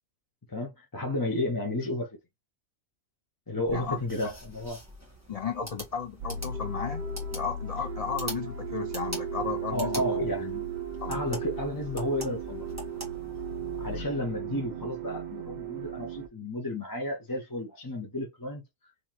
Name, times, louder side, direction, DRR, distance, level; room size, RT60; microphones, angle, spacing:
voice 1, 0.5-2.1 3.5-4.8 9.7-10.7 11.1-12.7 13.8-18.6, left 1 dB, 20° left, 0.7 m, -32 dB
sound 1, 3.7-14.0, equal, 10° right, 1.4 m, -44 dB
voice 2, 5.3-7.0 7.3-10.0 11.0-11.2, left 6 dB, 70° left, 0.3 m, -34 dB
sound 2, 6.2-16.3, right 5 dB, 65° right, 0.4 m, -36 dB
3.8 x 2.8 x 2.9 m
omnidirectional pair, 1.4 m